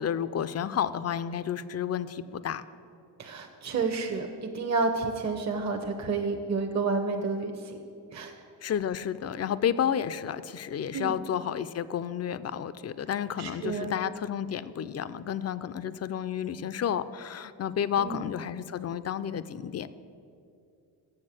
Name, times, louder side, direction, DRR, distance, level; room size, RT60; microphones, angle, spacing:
voice 1, 0.0-2.6 8.6-19.9, left 9 dB, 40° left, 15 dB, 0.4 m, -31 dB
voice 2, 3.2-7.8 8.1-8.3 10.9-11.2 13.4-14.0 18.0-18.3, right 4 dB, 40° right, 3 dB, 0.9 m, -30 dB
7.2 x 6.5 x 7.5 m, 2.5 s
supercardioid pair, 55°, 43 cm